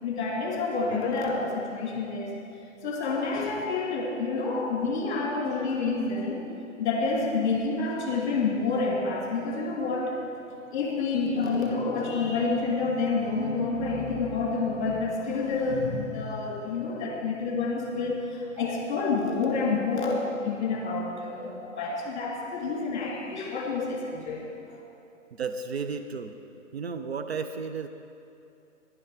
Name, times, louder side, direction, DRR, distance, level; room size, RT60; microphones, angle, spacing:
voice 1, 0.0-2.3 2.8-6.4 6.8-10.2 10.7-24.4 24.7-24.8, left 4 dB, 35° left, -2 dB, 2.8 m, -28 dB
voice 2, 25.3-26.4 26.7-27.9, right 5 dB, 50° right, 7 dB, 0.6 m, -33 dB
11.0 x 11.0 x 5.0 m, 2.6 s
figure-of-eight pair, 140°, 40 cm